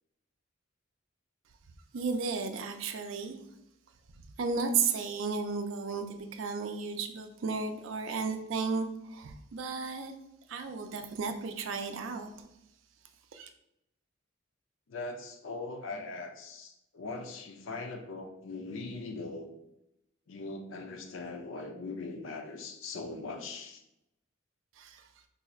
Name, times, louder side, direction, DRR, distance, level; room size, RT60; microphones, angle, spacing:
voice 1, 1.9-3.4 4.4-10.1 10.5-12.3 13.3-13.5 24.8-25.0, right 5 dB, 65° right, 7 dB, 0.4 m, -34 dB
voice 2, 14.9-19.5 20.3-23.8, left 3 dB, 65° left, 4 dB, 0.5 m, -40 dB
2.7 x 2.4 x 4.2 m, 0.85 s
head